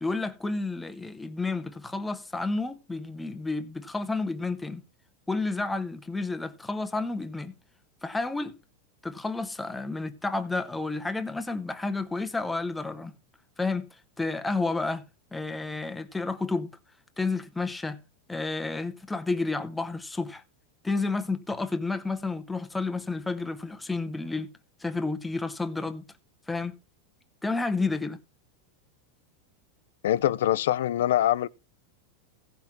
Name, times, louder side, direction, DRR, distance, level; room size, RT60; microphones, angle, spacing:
voice 1, 0.0-4.8 5.3-7.5 8.0-8.6 9.0-13.1 13.6-13.9 14.2-15.0 15.3-16.8 17.2-18.0 18.3-20.4 20.8-24.5 24.8-26.1 26.5-26.8 27.4-28.2, left 3 dB, 5° left, 0.7 m, -31 dB
voice 2, 30.0-31.5, left 12 dB, 80° left, 0.5 m, -24 dB
16.0 x 5.8 x 4.4 m
supercardioid pair, 170°, 0 cm